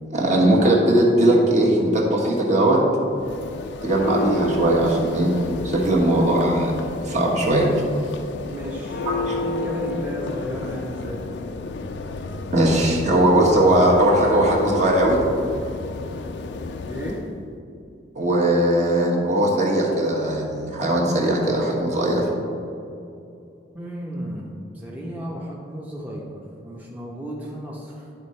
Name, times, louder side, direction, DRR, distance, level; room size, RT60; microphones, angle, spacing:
voice 1, 0.1-2.8 3.8-5.3 5.6-6.7 7.0-7.7 9.3-9.4 12.5-15.2 18.1-22.3, right 1 dB, 40° right, -2 dB, 1.3 m, -19 dB
Church bell, 3.1-17.3, left 3 dB, 70° left, 0.4 m, -31 dB
voice 2, 8.4-11.3 16.9-17.2 23.7-24.5 24.7-26.3 26.6-28.0, equal, 10° right, -5 dB, 0.8 m, -33 dB
10.5 x 3.7 x 4.3 m, 2.6 s
head